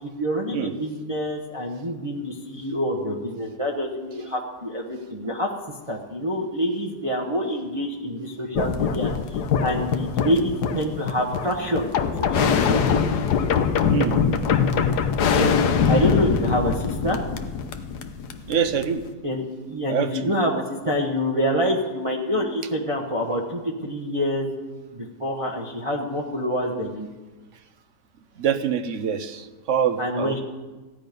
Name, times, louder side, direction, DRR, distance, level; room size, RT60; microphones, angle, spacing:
voice 1, 0.0-5.5 5.9-11.9 12.2-12.8 15.3-15.5 15.9-17.2 19.2-24.5 24.9-27.1 30.0-30.4, equal, 25° right, -2 dB, 1.1 m, -26 dB
sound 1, 8.6-19.1, left 6 dB, 80° left, 1.4 m, -23 dB
voice 2, 13.9-14.3 14.9-15.1 18.5-19.0 19.9-20.3 28.4-30.4, right 7 dB, 55° right, 10 dB, 1.0 m, -25 dB
15.5 x 10.0 x 5.3 m, 1.3 s
omnidirectional pair, 1.7 m